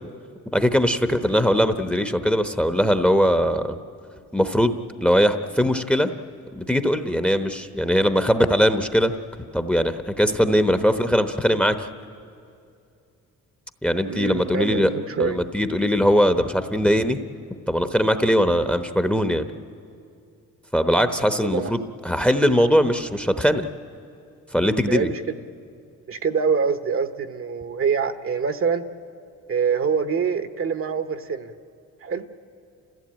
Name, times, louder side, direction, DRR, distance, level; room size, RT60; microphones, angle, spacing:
voice 1, 0.5-3.8 4.3-6.1 6.5-9.1 9.5-11.8 13.8-14.9 15.2-17.2 17.7-19.5 20.7-23.6 24.5-25.1, equal, 5° left, 9 dB, 0.9 m, -20 dB
voice 2, 14.1-15.4 21.4-21.7 24.9-25.4 26.1-28.8 29.5-31.5 32.0-32.2, right 6 dB, 45° right, 10 dB, 1.1 m, -25 dB
30.0 x 15.0 x 8.9 m, 2.5 s
cardioid pair, 90°, 30 cm